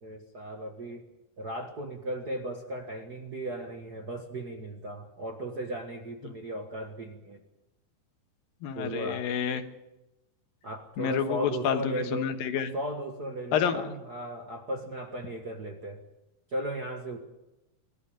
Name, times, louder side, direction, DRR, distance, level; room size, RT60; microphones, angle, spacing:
voice 1, 0.0-1.0 1.4-7.4 8.7-9.3 10.6-12.3 12.7-16.0 16.5-17.2, right 1 dB, 50° right, 4 dB, 1.2 m, -36 dB
voice 2, 8.6-9.6 11.0-12.7 13.5-13.8, left 8 dB, 75° left, 7 dB, 2.9 m, -29 dB
23.5 x 13.5 x 8.7 m, 0.97 s
omnidirectional pair, 4.3 m